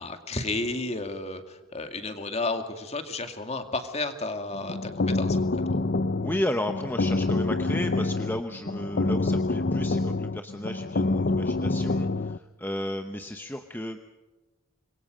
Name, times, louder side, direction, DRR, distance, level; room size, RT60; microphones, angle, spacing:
voice 1, 0.0-5.8, left 2 dB, 30° left, 7 dB, 2.2 m, -32 dB
sound 1, 4.5-12.4, left 2 dB, 50° left, 0.6 m, -27 dB
voice 2, 6.2-14.0, left 1 dB, 10° left, 6 dB, 0.9 m, -33 dB
26.5 x 22.5 x 5.2 m, 1.2 s
head